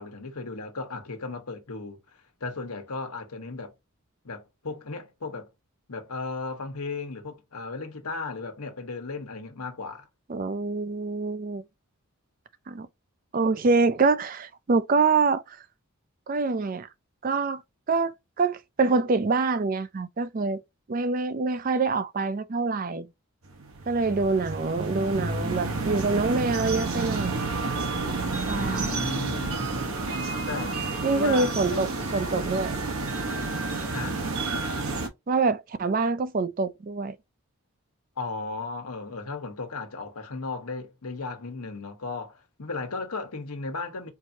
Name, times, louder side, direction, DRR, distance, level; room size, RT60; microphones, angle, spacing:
voice 1, 0.0-2.0 2.4-3.7 4.2-5.5 5.9-10.1 28.4-29.9 30.5-30.8 31.1-31.9 33.9-34.2 38.2-44.1, left 3 dB, 90° left, 1.2 m, -35 dB
voice 2, 10.3-11.6 12.7-12.9 13.3-15.6 16.3-16.9 17.2-17.6 17.9-20.6 20.9-23.1 23.9-27.4 28.5-28.9 31.0-32.8 35.3-37.2, right 4 dB, 40° right, 0.4 m, -25 dB
sound 1, 23.4-35.1, right 3 dB, 75° right, 1.0 m, -30 dB
4.6 x 2.7 x 2.8 m
head